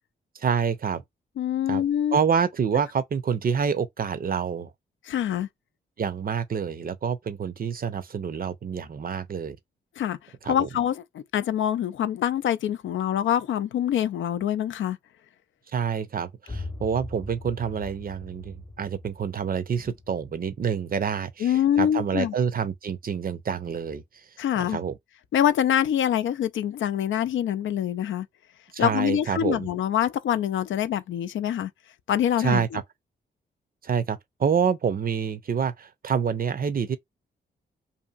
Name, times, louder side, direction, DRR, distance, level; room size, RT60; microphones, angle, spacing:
voice 1, 0.4-1.0 1.7-1.8 2.1-4.7 6.0-9.6 10.4-10.7 15.7-24.0 24.7-25.0 28.7-29.7 32.4-32.8 33.8-37.0, right 7 dB, 45° right, 0.6 m, -27 dB
voice 2, 1.4-2.2 5.0-5.5 10.0-10.2 10.4-15.0 21.4-22.3 24.4-24.8 25.3-28.3 28.8-31.7 32.1-32.8, left 10 dB, 70° left, 0.4 m, -25 dB
sound 1, 16.5-22.1, left 2 dB, 20° left, 0.8 m, -42 dB
2.8 x 2.5 x 2.3 m
supercardioid pair, 50°, 21 cm